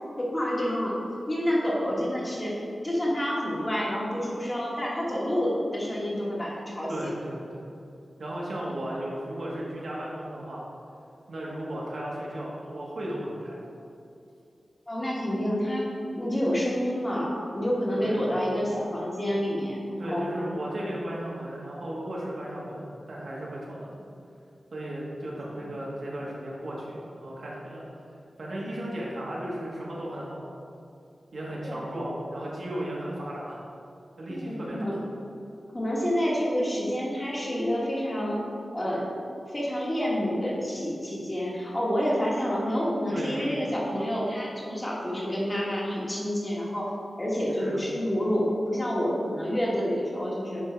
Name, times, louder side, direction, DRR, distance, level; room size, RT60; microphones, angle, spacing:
voice 1, 0.2-1.0 1.3-2.5 2.8-7.1 14.9-15.8 16.2-20.3 25.6-25.7 31.6-32.1 34.3-35.0 35.7-38.4 38.7-39.1 39.5-50.6, equal, 20° left, -5 dB, 1.4 m, -28 dB
voice 2, 6.9-7.6 8.2-10.6 11.3-13.6 17.9-18.2 20.0-24.0 24.7-27.8 28.4-30.4 31.3-33.6 34.2-34.9 43.1-43.5 47.6-47.8, right 1 dB, 65° right, -5 dB, 1.5 m, -35 dB
9.9 x 3.6 x 4.5 m, 2.7 s
wide cardioid pair, 125°, 0 cm